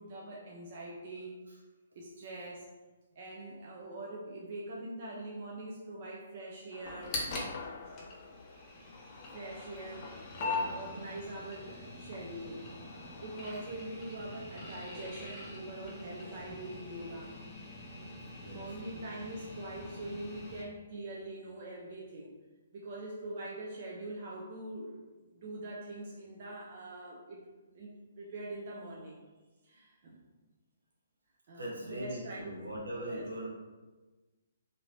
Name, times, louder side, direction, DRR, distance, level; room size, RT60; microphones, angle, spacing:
voice 1, 0.0-1.3 1.9-2.7 3.2-7.2 7.8-8.0 9.3-12.7 13.2-17.4 17.9-22.3 22.7-25.0 25.3-27.4 27.7-27.9 28.2-29.2 29.6-30.2 31.5-32.5 32.9-33.3, right 2 dB, 50° right, -3 dB, 0.5 m, -43 dB
sound 1, 6.7-13.6, left 5 dB, 50° left, 0.3 m, -48 dB
sound 2, 6.8-20.6, left 2 dB, 25° left, 0.8 m, -43 dB
voice 2, 18.3-18.6 31.6-33.5, equal, 85° right, -3 dB, 1.0 m, -40 dB
2.7 x 2.7 x 3.2 m, 1.2 s
figure-of-eight pair, 135°, 0 cm